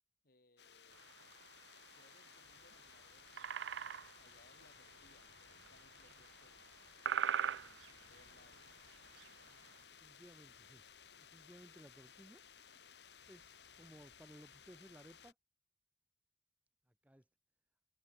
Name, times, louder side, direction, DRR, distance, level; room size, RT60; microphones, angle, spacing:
voice 1, 0.2-1.1 1.9-6.7 7.5-8.7, left 2 dB, 55° left, 5.3 m, -70 dB
sound 1, 0.6-15.3, left 7 dB, 70° left, 3.0 m, -60 dB
sound 2, 0.9-9.8, right 8 dB, 80° right, 0.5 m, -41 dB
voice 2, 10.0-10.8 11.2-12.4 13.3-15.3 17.0-17.2, equal, 10° right, 1.1 m, -59 dB
open air
head